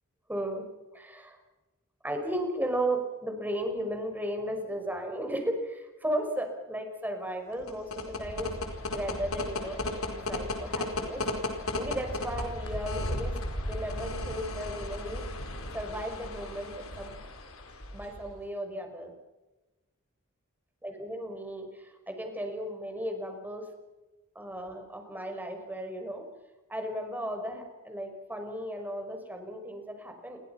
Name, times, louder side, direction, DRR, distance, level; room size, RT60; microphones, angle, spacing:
voice 1, 0.3-0.6 0.9-1.4 2.0-8.5 8.9-9.8 10.1-11.2 11.8-13.3 13.7-15.2 15.7-16.7 17.0-17.2 17.9-19.1 20.8-23.6 24.4-26.2 26.7-30.4, right 1 dB, 10° right, 4 dB, 5.6 m, -35 dB
sound 1, 7.5-18.3, left 1 dB, 70° left, 4.9 m, -35 dB
29.0 x 24.0 x 5.9 m, 1.1 s
head